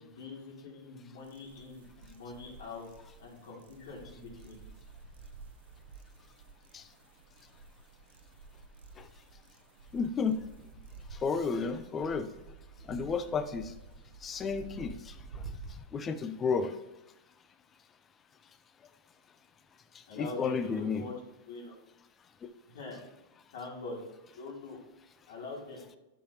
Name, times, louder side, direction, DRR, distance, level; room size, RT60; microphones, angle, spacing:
voice 1, 0.0-2.9 3.2-4.6 20.1-21.1 21.5-21.8 22.7-23.0 23.5-24.0 24.3-24.8 25.3-25.8, left 3 dB, 75° left, -3 dB, 3.1 m, -43 dB
sound 1, 1.2-15.8, right 4 dB, 85° right, 0.8 m, -50 dB
voice 2, 9.9-10.4 11.1-12.3 12.9-13.7 14.2-15.4 15.9-16.7 20.2-21.0, left 5 dB, 20° left, 11 dB, 0.5 m, -32 dB
12.0 x 5.8 x 2.9 m, 0.97 s
supercardioid pair, 150°, 0 cm